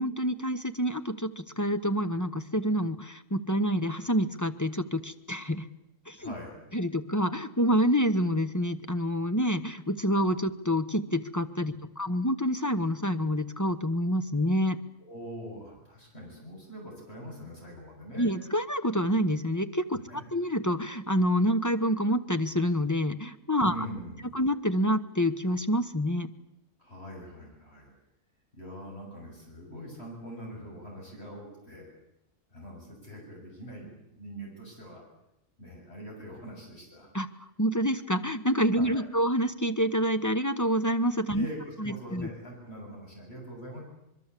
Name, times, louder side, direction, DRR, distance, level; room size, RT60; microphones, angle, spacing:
voice 1, 0.0-5.7 6.1-6.3 6.7-14.8 18.1-23.7 24.3-26.3 37.1-37.3 37.6-41.5 41.8-42.3, equal, 15° left, 10 dB, 1.0 m, -27 dB
voice 2, 6.2-6.6 15.1-18.3 19.9-20.3 23.7-24.4 26.8-27.9 28.5-31.9 32.5-35.0 35.6-37.1 38.8-39.0 41.3-43.8, equal, 50° left, -1 dB, 7.9 m, -43 dB
25.0 x 22.5 x 8.3 m, 0.86 s
omnidirectional pair, 1.3 m